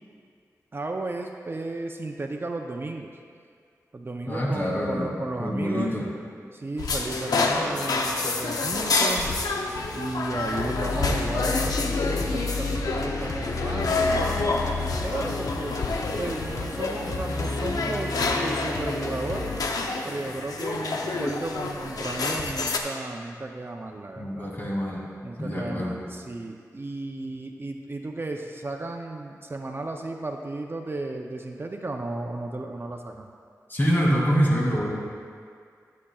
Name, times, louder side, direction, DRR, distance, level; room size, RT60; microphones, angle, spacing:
voice 1, 0.7-3.1 3.9-5.9 6.5-9.3 9.9-15.8 16.2-19.5 20.0-24.5 25.2-33.3, right 2 dB, 40° right, 3 dB, 0.6 m, -34 dB
voice 2, 4.3-5.1 5.4-6.1 24.2-25.0 25.4-26.0 33.7-35.0, equal, 35° left, -4 dB, 2.3 m, -25 dB
sound 1, 6.8-22.8, left 3 dB, 90° left, 0.6 m, -28 dB
sound 2, 10.3-19.6, left 3 dB, 60° left, 0.9 m, -31 dB
13.0 x 8.3 x 2.4 m, 2.1 s
wide cardioid pair, 65°, 6 cm